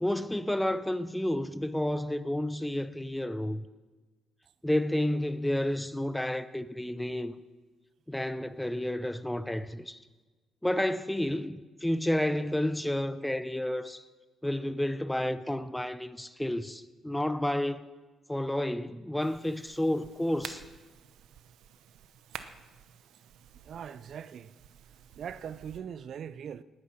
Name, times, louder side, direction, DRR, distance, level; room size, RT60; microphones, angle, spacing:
voice 1, 0.0-3.6 4.6-7.3 8.1-10.0 10.6-14.0 14.4-17.9 18.3-20.6, left 1 dB, 5° left, 0.7 m, -30 dB
sound 1, 19.2-25.8, right 9 dB, 85° right, 0.8 m, -50 dB
voice 2, 23.6-24.5 25.1-26.6, right 8 dB, 60° right, 0.5 m, -41 dB
19.0 x 9.8 x 6.3 m
cardioid pair, 90°, 0 cm